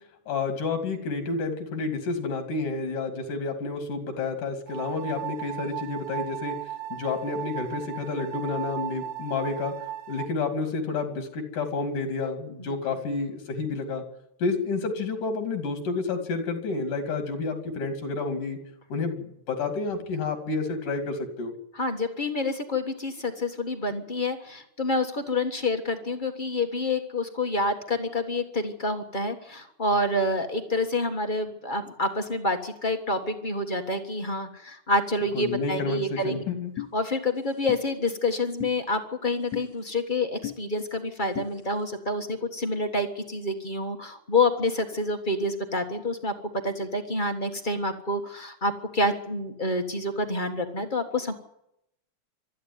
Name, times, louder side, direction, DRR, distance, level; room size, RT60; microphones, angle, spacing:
voice 1, 0.3-6.6 6.9-9.7 10.1-14.0 14.4-18.6 18.9-21.5 35.3-36.7, left 4 dB, 85° left, 6 dB, 4.1 m, -30 dB
sound 1, 4.7-10.3, right 12 dB, 55° right, 3.7 m, -36 dB
voice 2, 21.7-36.4 36.9-46.3 46.6-51.3, left 2 dB, 45° left, 5 dB, 0.6 m, -28 dB
sound 2, 36.8-36.9 37.7-37.8 38.6-38.7 39.5-39.7 40.4-40.6 41.3-41.5, left 14 dB, 70° left, 2.0 m, -33 dB
24.5 x 13.0 x 9.5 m, 0.80 s
omnidirectional pair, 3.6 m